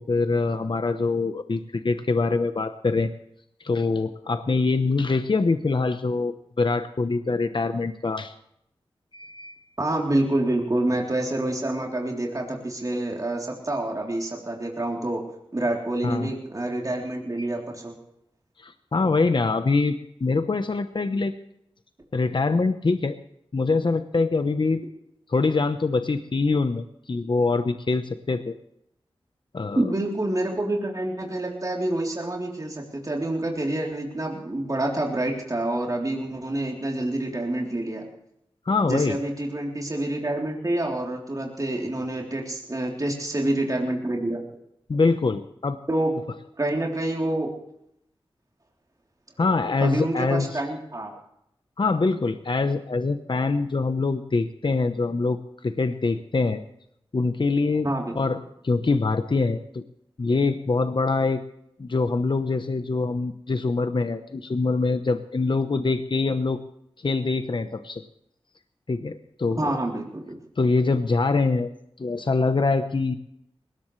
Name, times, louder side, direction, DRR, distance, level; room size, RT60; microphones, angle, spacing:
voice 1, 0.0-3.1 3.6-8.3 9.1-9.6 16.0-16.3 18.6-21.3 22.1-23.2 23.5-24.8 25.3-28.5 29.5-29.9 38.7-39.2 44.9-45.8 49.4-50.6 51.1-51.2 51.8-55.4 55.6-56.6 57.1-57.9 58.2-58.4 58.6-59.8 60.2-61.4 61.8-66.6 67.0-68.0 68.9-69.8 70.6-71.7 72.0-73.2, left 3 dB, 55° left, 9 dB, 1.0 m, -24 dB
voice 2, 9.8-15.2 15.5-17.9 29.8-38.0 38.9-44.4 45.9-46.1 46.6-47.5 49.8-51.1 57.8-58.4 69.6-70.4, right 1 dB, 35° right, -1 dB, 3.5 m, -27 dB
21.0 x 18.0 x 3.3 m, 0.77 s
cardioid pair, 50°, 10 cm